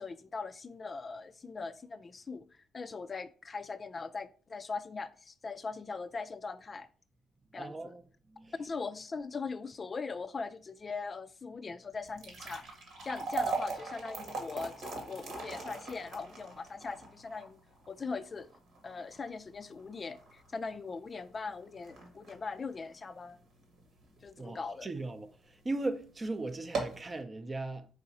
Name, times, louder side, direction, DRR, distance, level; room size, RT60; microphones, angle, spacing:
voice 1, 0.0-6.9 7.5-8.0 8.6-12.6 13.0-17.6 17.9-18.5 18.8-23.4 24.2-24.9, left 4 dB, 35° left, 0.3 m, -40 dB
voice 2, 7.6-8.0 8.3-8.7 24.4-25.3 25.6-27.9, right 2 dB, 25° right, 0.5 m, -37 dB
sound 1, 12.0-24.3 24.7-24.8 25.5-25.7 26.0-26.1 26.5-27.1, right 4 dB, 70° right, 1.3 m, -40 dB
4.7 x 2.6 x 4.1 m
cardioid pair, 90°, 0 cm